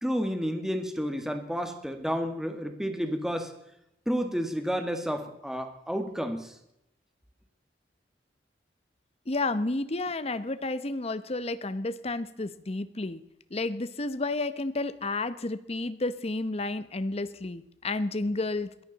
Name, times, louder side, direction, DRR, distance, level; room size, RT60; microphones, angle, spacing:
voice 1, 0.0-3.5 4.1-6.6, equal, 5° right, 6 dB, 1.7 m, -31 dB
voice 2, 9.3-13.2 13.5-18.8, left 2 dB, 35° left, 13 dB, 0.8 m, -31 dB
22.0 x 14.0 x 4.1 m, 0.83 s
head